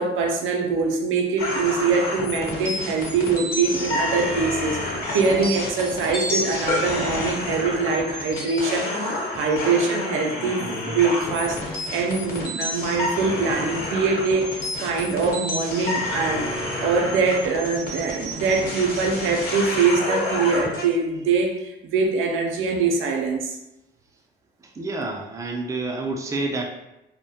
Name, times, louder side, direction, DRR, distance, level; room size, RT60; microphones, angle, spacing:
voice 1, 0.0-23.6, right 4 dB, 85° right, 2 dB, 0.4 m, -23 dB
sound 1, 1.4-20.9, left 1 dB, 45° left, 1.0 m, -29 dB
voice 2, 24.6-26.7, right 2 dB, 15° right, 1 dB, 0.4 m, -28 dB
2.1 x 2.1 x 2.7 m, 0.92 s
cardioid pair, 90°, 20 cm